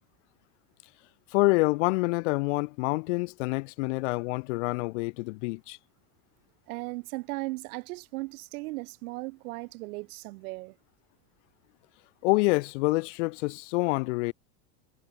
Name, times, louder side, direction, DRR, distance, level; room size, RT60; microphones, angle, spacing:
voice 1, 1.3-5.8 12.2-14.3, left 26 dB, 50° left, 0.5 m, -27 dB
voice 2, 6.7-10.8, right 23 dB, 60° right, 2.8 m, -37 dB
supercardioid pair, 175°, 50 cm